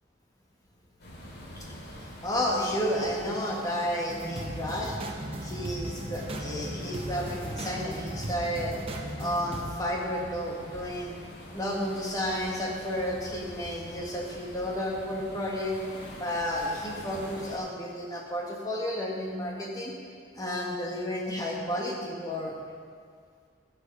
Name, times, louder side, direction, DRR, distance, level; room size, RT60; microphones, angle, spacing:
sound 1, 1.0-17.6, equal, 65° left, 2.5 m, -46 dB
voice 1, 1.9-5.0 5.4-8.8 9.2-11.2 11.5-15.7 16.2-19.9 20.3-22.5, equal, 20° left, -2 dB, 1.8 m, -32 dB
sound 2, 4.1-9.7, right 1 dB, 30° right, 1.0 m, -37 dB
15.0 x 6.6 x 5.1 m, 2.1 s
head